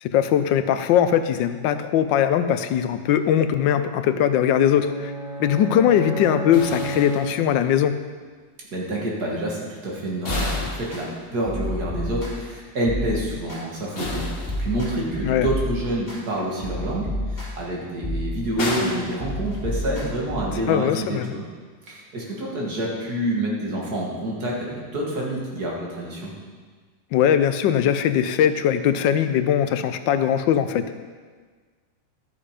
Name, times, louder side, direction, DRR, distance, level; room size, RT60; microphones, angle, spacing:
voice 1, 0.0-5.1 5.4-7.9 15.2-15.5 20.7-21.3 27.1-30.9, left 9 dB, 90° left, 10 dB, 1.4 m, -20 dB
sound 1, 4.3-7.8, right 2 dB, 45° right, 2.2 m, -32 dB
sound 2, 6.5-7.8 10.2-11.6 13.9-15.1 18.6-19.9, left 2 dB, 35° left, 1.5 m, -33 dB
voice 2, 8.7-14.3 14.6-21.5 21.9-26.3, right 1 dB, 60° right, -3 dB, 2.5 m, -28 dB
sound 3, 10.3-11.0 11.5-12.5 12.9-13.6 14.0-16.2 16.6-17.7 18.0-18.8 19.2-20.6, left 1 dB, 10° left, 2.8 m, -30 dB
12.0 x 7.1 x 5.0 m, 1.5 s
omnidirectional pair, 1.9 m